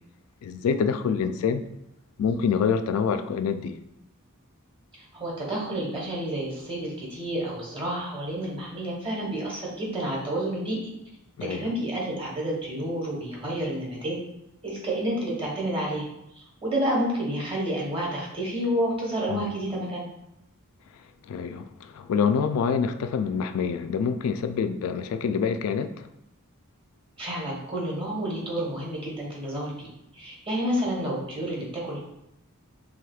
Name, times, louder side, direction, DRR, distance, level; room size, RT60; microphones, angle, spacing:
voice 1, 0.4-1.6 2.2-3.8 11.4-11.7 19.3-19.6 21.3-26.1, left 6 dB, 75° left, 0.3 m, -26 dB
voice 2, 5.0-10.8 11.4-14.2 14.6-16.1 16.4-20.1 27.2-32.0, right 1 dB, 25° right, 1.2 m, -30 dB
4.8 x 3.4 x 2.3 m
head